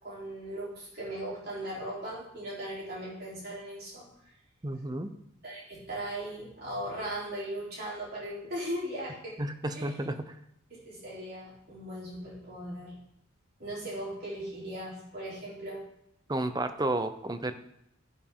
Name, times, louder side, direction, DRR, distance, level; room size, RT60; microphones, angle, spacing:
voice 1, 0.0-4.3 5.4-9.4 9.7-10.1 10.7-13.0 13.6-15.8, right 1 dB, 50° right, -6 dB, 3.5 m, -38 dB
voice 2, 4.6-5.1 9.4-10.4 16.3-17.5, right 1 dB, 20° right, 9 dB, 0.7 m, -32 dB
11.5 x 10.5 x 3.7 m, 0.77 s
head